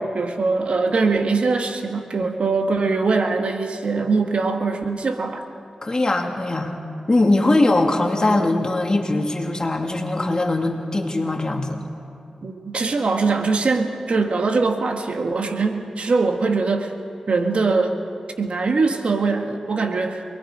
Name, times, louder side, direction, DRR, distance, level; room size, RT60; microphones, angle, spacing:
voice 1, 0.0-5.4 12.4-16.9 17.3-18.0 18.4-20.2, right 4 dB, 65° right, 4 dB, 1.7 m, -22 dB
voice 2, 5.8-6.8 7.1-11.8, left 2 dB, 35° left, 2 dB, 2.6 m, -21 dB
27.5 x 21.0 x 5.1 m, 2.5 s
cardioid pair, 55°, 2 cm